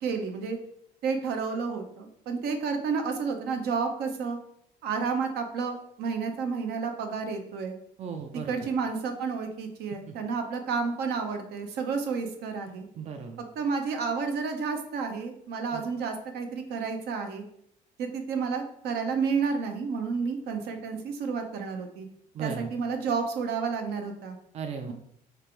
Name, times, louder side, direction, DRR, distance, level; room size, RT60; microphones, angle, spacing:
voice 1, 0.0-0.6 1.0-4.4 4.8-7.8 8.3-12.9 13.6-17.4 18.0-22.1 22.4-24.4, right 5 dB, 75° right, 5 dB, 0.7 m, -31 dB
voice 2, 8.0-8.5 13.0-13.4 15.7-15.8 22.3-22.7 24.5-24.9, right 6 dB, 40° right, 5 dB, 0.4 m, -35 dB
3.3 x 2.5 x 4.4 m, 0.70 s
cardioid pair, 110°, 17 cm